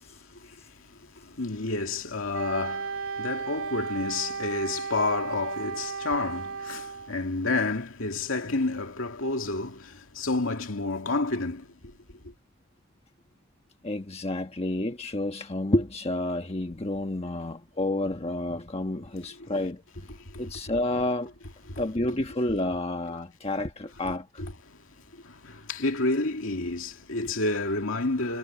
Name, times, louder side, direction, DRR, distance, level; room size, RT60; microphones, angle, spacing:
voice 1, 0.0-11.9 12.2-12.3 19.4-19.5 20.2-20.4 21.7-21.8 24.4-24.9 25.1-28.4, left 2 dB, 70° left, 2.5 m, -30 dB
Wind instrument woodwind instrument, 2.3-7.1, right 5 dB, 80° right, 2.8 m, -34 dB
voice 2, 13.8-20.1 20.4-21.3 21.8-24.4, left 1 dB, 30° left, 1.2 m, -30 dB
head